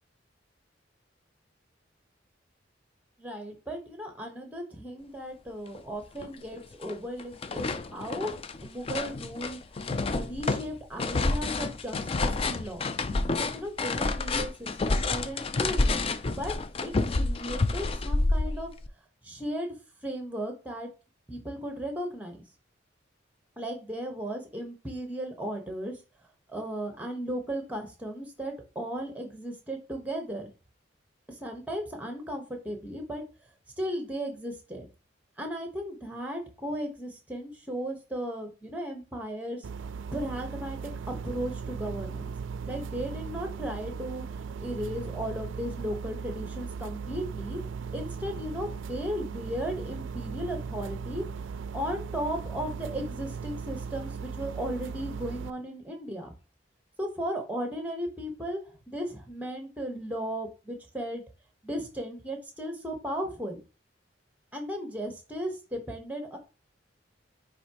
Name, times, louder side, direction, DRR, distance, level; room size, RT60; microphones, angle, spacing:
voice 1, 3.2-8.3 8.6-9.6 10.1-12.8 13.4-16.1 16.3-16.5 16.8-16.9 17.2-18.7 19.2-19.7 20.0-20.9 21.3-22.4 23.6-26.0 26.5-30.5 31.3-33.2 33.8-34.9 35.4-42.3 42.7-47.6 47.9-56.3 57.0-61.2 61.6-63.6 64.5-66.4, equal, 10° right, 4 dB, 1.1 m, -36 dB
sound 1, 5.7-5.8 6.2-6.9 7.2-18.9, left 3 dB, 30° left, 0.4 m, -29 dB
sound 2, 39.6-55.5, right 5 dB, 80° right, 0.3 m, -38 dB
9.3 x 3.4 x 2.9 m, 0.32 s
head